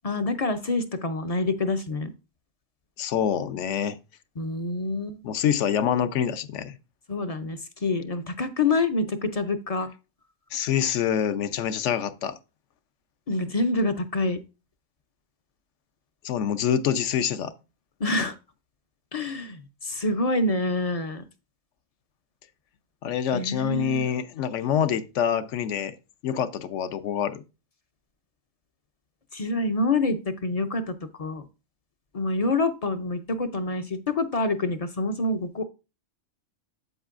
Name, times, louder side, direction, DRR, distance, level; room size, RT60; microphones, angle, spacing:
voice 1, 0.0-2.1 4.4-5.2 7.1-9.9 13.3-14.4 18.0-18.3 19.1-21.2 23.3-24.0 29.3-31.5 32.1-35.6, left 2 dB, 45° left, 0.5 m, -27 dB
voice 2, 3.0-4.0 5.2-6.8 10.5-12.4 16.2-17.5 23.0-26.0 26.2-27.4, left 9 dB, 75° left, 1.0 m, -26 dB
8.1 x 8.0 x 2.5 m
omnidirectional pair, 1.3 m